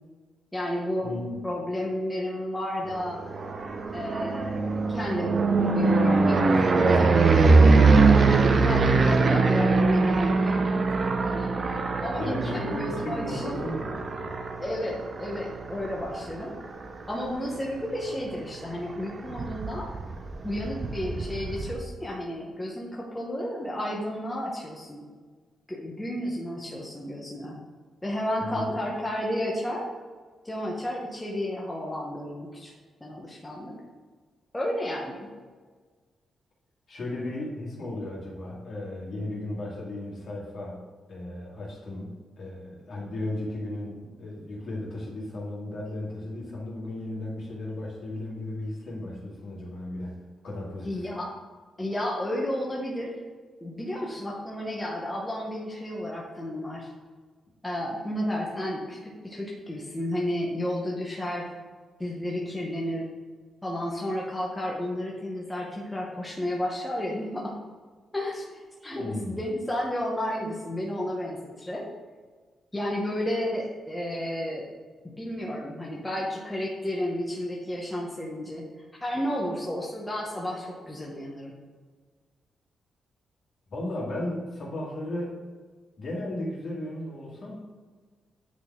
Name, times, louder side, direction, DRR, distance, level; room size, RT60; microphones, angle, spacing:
voice 1, 0.5-1.1 1.4-3.2 3.9-6.5 6.8-8.3 8.6-10.8 11.3-11.6 12.0-13.6 14.6-16.6 17.1-19.9 20.4-25.1 25.7-27.6 28.0-29.9 30.4-32.7 33.0-33.7 34.5-35.3 50.8-51.3 51.8-53.2 53.6-56.9 57.6-61.5 62.0-63.1 63.6-67.6 68.1-71.8 72.7-74.7 75.0-78.7 79.0-81.5, left 1 dB, 10° left, -3 dB, 0.9 m, -32 dB
voice 2, 1.0-1.4 12.2-14.3 28.4-28.8 36.9-40.8 41.1-50.2 50.4-51.1 68.9-69.4 83.7-85.3 86.0-87.6, left 1 dB, 50° left, -4 dB, 2.1 m, -35 dB
sound 1, 3.1-17.1 17.6-18.0 18.3-18.4 18.7-21.7, right 3 dB, 40° right, 0.6 m, -22 dB
9.3 x 4.0 x 3.6 m, 1.5 s
wide cardioid pair, 140°, 0 cm